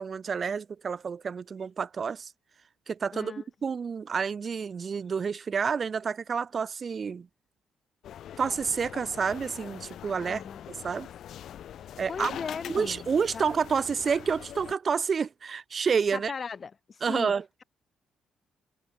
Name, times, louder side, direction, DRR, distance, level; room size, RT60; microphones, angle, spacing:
voice 1, 0.0-2.3 2.9-3.3 3.6-7.3 8.4-10.4 10.7-11.1 12.0-12.4 12.7-16.3 17.0-17.4, right 6 dB, 45° right, 0.7 m, -29 dB
voice 2, 3.1-3.4 10.2-10.6 12.1-13.1 13.3-13.4 16.1-17.3, left 5 dB, 40° left, 1.6 m, -37 dB
sound 1, 8.0-14.7, left 10 dB, 70° left, 1.1 m, -43 dB
cardioid pair, 90°, 0 cm